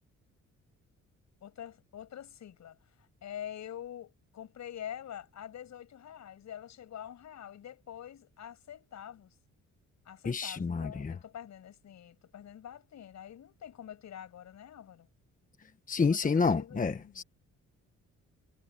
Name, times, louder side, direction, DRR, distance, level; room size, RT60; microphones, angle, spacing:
voice 1, 1.4-9.3 10.0-15.1 16.0-17.2, left 10 dB, 65° left, 6.6 m, -46 dB
voice 2, 10.2-11.1 15.9-17.2, left 5 dB, 25° left, 1.3 m, -29 dB
cardioid pair, 90°, 30 cm